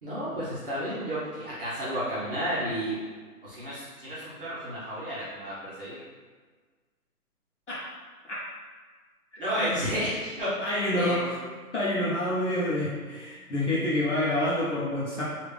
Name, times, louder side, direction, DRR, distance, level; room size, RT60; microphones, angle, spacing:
voice 1, 0.0-3.0 3.4-6.0 9.4-10.7 10.9-11.2, equal, 35° right, -11 dB, 0.8 m, -31 dB
voice 2, 10.6-11.4 11.7-15.2, left 1 dB, 50° left, -7 dB, 0.7 m, -27 dB
3.3 x 2.5 x 3.3 m, 1.4 s
hypercardioid pair, 175°, 45 cm